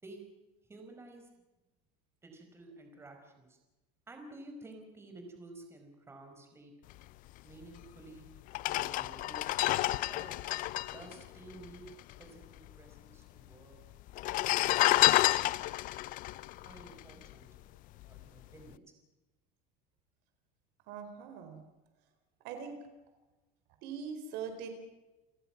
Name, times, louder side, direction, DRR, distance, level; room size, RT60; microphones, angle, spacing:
voice 1, 0.7-1.3 2.2-3.6 4.1-6.7 7.4-8.3 8.7-10.3 10.8-11.9 12.2-13.8 14.6-15.3 16.6-17.7 18.0-18.8, right 2 dB, 15° right, 4 dB, 5.0 m, -52 dB
sound 1, 7.8-7.9 8.5-12.2 12.4-12.5 12.7-13.4 14.1-17.6 18.0-18.2, left 17 dB, 45° left, 0.6 m, -30 dB
voice 2, 20.9-21.6 22.4-22.8 23.8-24.7, right 6 dB, 60° right, 7 dB, 4.3 m, -41 dB
29.5 x 17.5 x 6.0 m, 1.1 s
cardioid pair, 155°, 19 cm